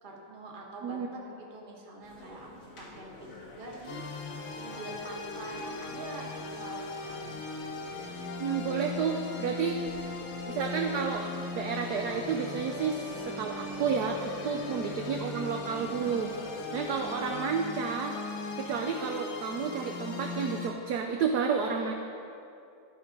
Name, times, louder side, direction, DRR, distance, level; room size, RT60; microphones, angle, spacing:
voice 1, 0.0-4.0 4.5-7.3 14.5-14.8, right 2 dB, 30° right, -1 dB, 1.0 m, -45 dB
sound 1, 2.0-17.4, left 1 dB, 55° left, 1.6 m, -49 dB
sound 2, 3.9-20.7, left 3 dB, 85° left, 1.7 m, -38 dB
voice 2, 8.4-9.8 10.5-11.2 11.5-13.0 13.4-14.2 14.4-16.3 16.7-18.2 18.6-21.9, right 6 dB, 75° right, 2 dB, 0.9 m, -31 dB
12.5 x 4.7 x 5.2 m, 2.6 s
omnidirectional pair, 2.2 m